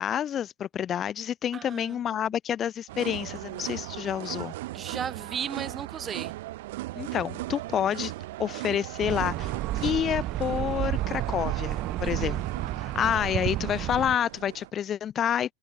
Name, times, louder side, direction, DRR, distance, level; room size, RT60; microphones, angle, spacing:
voice 1, 0.0-4.5 6.9-8.1 8.4-12.4 12.8-15.5, left 9 dB, 35° left, 0.4 m, -29 dB
voice 2, 1.5-2.3 4.7-6.3 12.0-12.4, right 7 dB, 30° right, 4.3 m, -36 dB
sound 1, 2.9-14.7, right 18 dB, 75° right, 3.9 m, -38 dB
sound 2, 9.0-14.1, right 14 dB, 45° right, 2.1 m, -31 dB
supercardioid pair, 110°, 0 cm